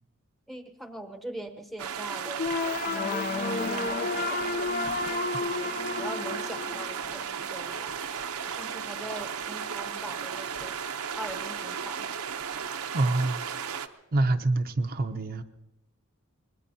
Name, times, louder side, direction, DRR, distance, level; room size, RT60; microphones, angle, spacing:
voice 1, 0.5-4.7 5.4-7.9 8.5-10.8 11.1-12.1, right 1 dB, ahead, 5 dB, 0.9 m, -42 dB
sound 1, 1.8-13.9, right 7 dB, 80° right, 0.8 m, -35 dB
sound 2, 2.4-7.4, left 4 dB, 40° left, 0.5 m, -31 dB
voice 2, 12.9-13.5 14.1-15.4, right 2 dB, 45° right, 5 dB, 0.6 m, -26 dB
25.0 x 20.5 x 2.8 m, 0.98 s
head